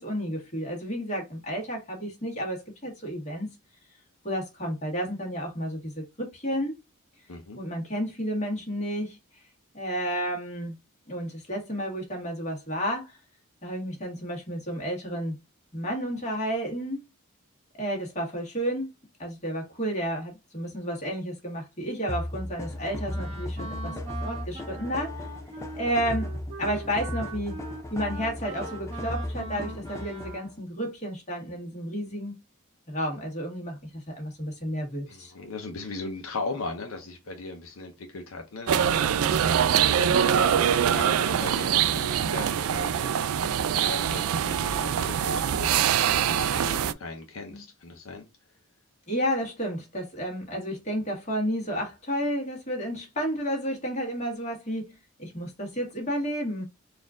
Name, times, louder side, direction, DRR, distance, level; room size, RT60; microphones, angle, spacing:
voice 1, 0.0-3.5 4.2-6.7 7.5-9.2 9.7-10.7 11.1-13.2 13.6-15.4 15.7-17.0 17.8-18.9 19.2-24.0 24.2-25.3 25.7-27.6 27.9-32.4 32.9-35.3 47.5-47.6 49.1-56.6, equal, 30° left, 1.5 m, -31 dB
voice 2, 7.3-7.6 35.1-45.9 46.2-48.3, left 3 dB, 70° left, 0.7 m, -38 dB
sound 1, 22.1-30.5, left 1 dB, 15° left, 0.4 m, -36 dB
Wind instrument woodwind instrument, 23.1-30.6, right 2 dB, 30° right, 0.9 m, -41 dB
sound 2, 38.7-46.9, right 8 dB, 70° right, 0.3 m, -24 dB
4.2 x 2.5 x 3.6 m
head